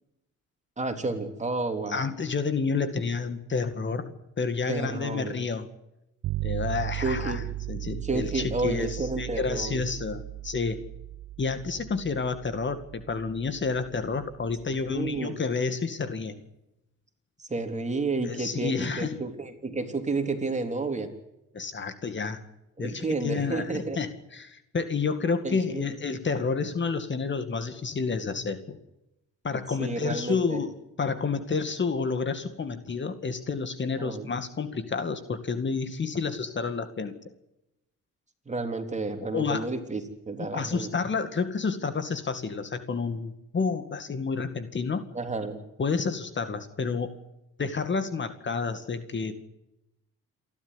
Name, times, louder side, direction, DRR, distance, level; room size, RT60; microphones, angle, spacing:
voice 1, 0.8-2.0 4.7-5.3 7.0-7.4 8.0-9.8 14.9-15.3 17.5-21.1 22.8-24.0 25.4-25.9 29.8-30.6 34.0-34.3 38.5-40.0 40.3-40.9 45.1-45.6, right 3 dB, 25° right, 6 dB, 3.4 m, -31 dB
voice 2, 1.9-4.1 4.4-5.7 6.4-10.8 11.4-16.3 18.3-19.2 21.5-22.4 22.8-28.8 29.4-37.2 39.3-39.7 40.5-45.1 45.8-47.1 47.6-49.4, left 4 dB, 40° left, 10 dB, 2.2 m, -30 dB
sound 1, 6.2-15.2, right 16 dB, 75° right, 0.8 m, -37 dB
28.0 x 12.0 x 9.8 m, 0.89 s
cardioid pair, 90°, 30 cm